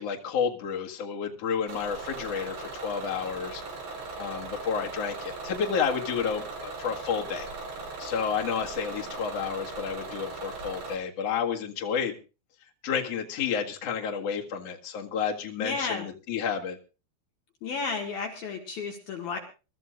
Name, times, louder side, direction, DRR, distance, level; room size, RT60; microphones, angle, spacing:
voice 1, 0.0-7.5 8.0-12.2 12.8-16.8, left 6 dB, 75° left, 1 dB, 1.4 m, -31 dB
Bus / Engine, 1.7-11.0, right 3 dB, 50° right, 5.7 m, -39 dB
voice 2, 15.6-16.1 17.6-19.4, left 4 dB, 60° left, 3 dB, 3.1 m, -32 dB
25.5 x 13.5 x 2.5 m, 0.32 s
omnidirectional pair, 5.9 m